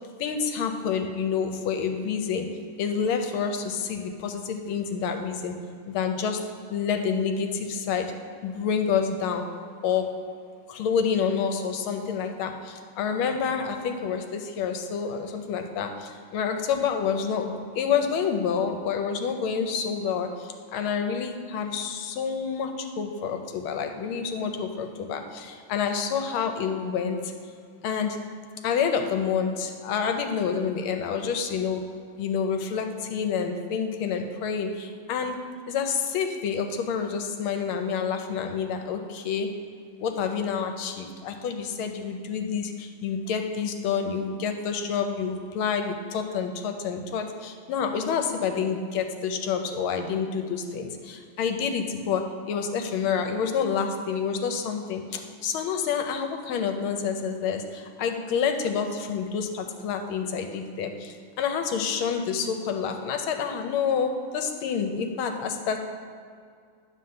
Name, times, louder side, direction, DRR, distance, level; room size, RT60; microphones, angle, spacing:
voice 1, 0.2-2.5 2.8-5.6 5.9-6.4 6.7-8.1 8.4-9.4 9.8-10.1 10.7-27.3 27.8-28.2 28.6-31.9 32.2-35.4 35.7-39.5 40.0-65.8, left 6 dB, 80° left, 6 dB, 1.5 m, -28 dB
9.4 x 3.8 x 6.5 m, 2.2 s
omnidirectional pair, 2.3 m